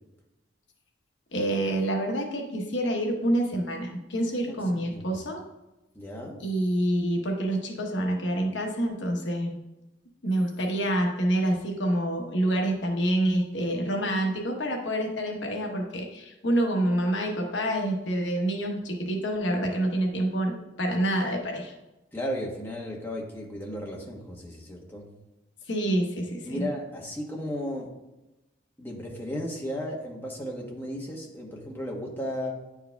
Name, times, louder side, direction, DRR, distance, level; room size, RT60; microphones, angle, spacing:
voice 1, 1.3-5.4 6.4-9.6 10.2-21.7 25.7-26.7, right 1 dB, 70° left, 1 dB, 1.0 m, -27 dB
voice 2, 4.5-5.2 5.9-6.4 22.1-25.1 26.4-27.9 28.8-32.5, equal, 10° left, -2 dB, 1.0 m, -35 dB
9.7 x 4.7 x 2.2 m, 1.0 s
head